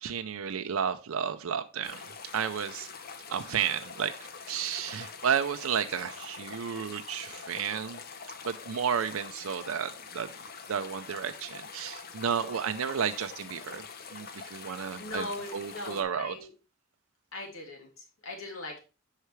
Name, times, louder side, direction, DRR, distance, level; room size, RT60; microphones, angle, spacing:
voice 1, 0.0-2.1 2.3-2.9 3.3-4.1 4.5-8.0 8.4-10.3 10.7-13.8 14.1-15.3 15.5-16.3, right 7 dB, 80° right, 8 dB, 0.5 m, -32 dB
sound 1, 1.8-16.0, left 5 dB, 45° left, 0.9 m, -45 dB
voice 2, 15.0-16.5 17.3-18.8, left 2 dB, 75° left, 1 dB, 2.7 m, -40 dB
8.1 x 5.7 x 3.1 m, 0.31 s
head